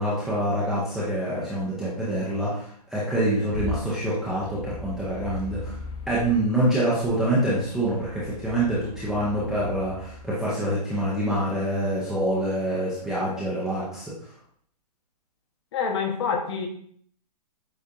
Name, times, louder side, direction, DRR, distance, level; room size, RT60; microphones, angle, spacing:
voice 1, 0.0-5.8 6.1-14.1, right 1 dB, ahead, -10 dB, 0.4 m, -26 dB
sound 1, 3.5-6.4 7.0-10.2, left 1 dB, 65° left, 1.2 m, -39 dB
voice 2, 15.7-16.7, left 6 dB, 40° left, 3 dB, 0.8 m, -26 dB
8.0 x 2.7 x 2.4 m, 0.62 s
hypercardioid pair, 160°, 21 cm